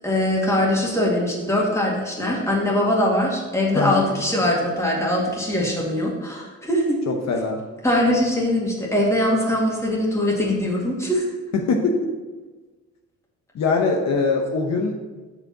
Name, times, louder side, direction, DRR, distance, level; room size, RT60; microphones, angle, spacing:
voice 1, 0.0-7.0 7.8-11.2, left 1 dB, 10° left, -3 dB, 2.2 m, -22 dB
voice 2, 3.7-4.1 7.1-7.6 11.6-12.1 13.5-14.9, left 4 dB, 60° left, 2 dB, 1.0 m, -22 dB
6.4 x 5.0 x 5.9 m, 1.3 s
cardioid pair, 90°, 30 cm